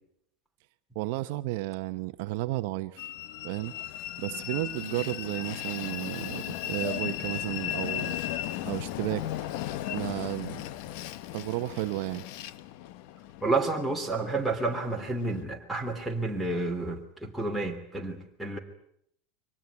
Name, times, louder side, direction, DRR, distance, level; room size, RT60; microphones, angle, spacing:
voice 1, 0.9-3.1 3.4-3.7 4.2-8.2 8.6-9.3 9.9-10.6 11.3-12.2, right 18 dB, 60° right, 10 dB, 0.9 m, -33 dB
Train, 3.0-15.4, left 12 dB, 55° left, 0.9 m, -36 dB
voice 2, 13.4-18.6, right 3 dB, ahead, -1 dB, 3.0 m, -30 dB
24.0 x 19.0 x 9.5 m, 0.72 s
supercardioid pair, 160°, 0 cm